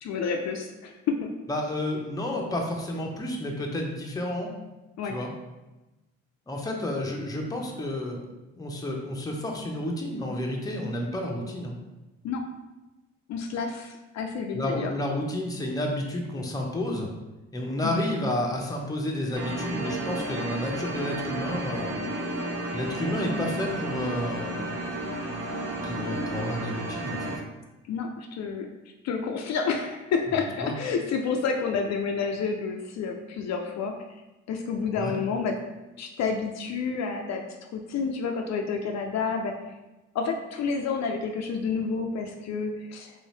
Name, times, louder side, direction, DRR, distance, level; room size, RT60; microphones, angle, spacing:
voice 1, 0.0-1.3 5.0-5.2 12.2-12.4 13.3-14.9 17.8-18.1 27.9-28.7 29.0-33.9 34.5-35.6 36.0-37.5 37.7-39.6 40.1-43.1, left 5 dB, 60° left, 3 dB, 0.4 m, -29 dB
voice 2, 1.5-4.5 5.0-5.3 6.5-8.2 8.6-11.7 14.5-17.1 17.5-21.9 22.7-24.8 25.8-27.2 30.3-30.7 34.9-35.2, left 1 dB, 10° left, 0 dB, 0.6 m, -31 dB
sound 1, 19.3-27.4, right 1 dB, 50° right, 0.9 m, -32 dB
3.0 x 2.8 x 3.1 m, 1.1 s
cardioid pair, 90°, 30 cm